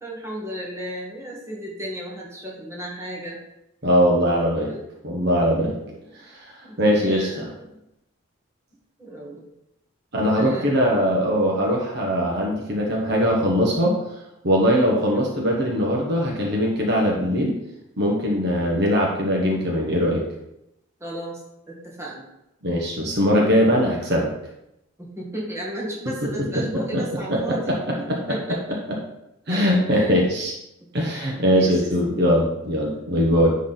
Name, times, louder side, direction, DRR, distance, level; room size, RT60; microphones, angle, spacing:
voice 1, 0.0-3.4 4.6-4.8 5.7-6.0 6.6-7.8 9.0-9.5 10.4-10.8 15.0-15.3 21.0-21.4 21.7-22.2 25.0-28.6 29.5-30.2 31.1-32.1 32.8-33.0, right 1 dB, 15° right, -5 dB, 1.7 m, -35 dB
voice 2, 3.8-4.7 5.0-5.8 6.2-6.5 6.8-7.5 10.1-14.0 14.4-17.6 18.0-20.2 22.6-24.3 26.0-26.1 26.4-27.0 27.3-28.4 28.9-29.0 29.5-30.5 30.9-33.5, equal, 55° right, -2 dB, 1.2 m, -21 dB
10.0 x 3.6 x 4.0 m, 0.86 s
head